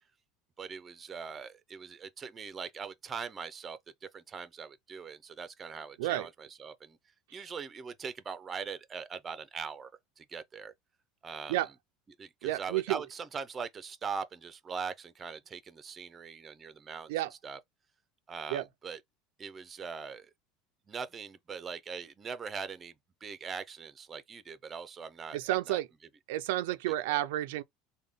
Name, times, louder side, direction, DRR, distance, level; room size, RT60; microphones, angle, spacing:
voice 1, 0.6-7.0 7.3-9.9 10.2-10.7 11.2-11.6 12.2-17.1 17.4-17.6 18.3-19.0 19.4-20.3 20.9-22.9 23.2-25.8 26.9-27.2, right 5 dB, 25° right, 0.5 m, -41 dB
voice 2, 6.0-6.3 7.3-7.4 11.5-11.7 12.4-13.0 17.1-17.3 18.5-18.6 25.3-25.9 26.3-27.6, right 15 dB, 80° right, 0.3 m, -31 dB
3.6 x 2.2 x 3.4 m
supercardioid pair, 135°, 0 cm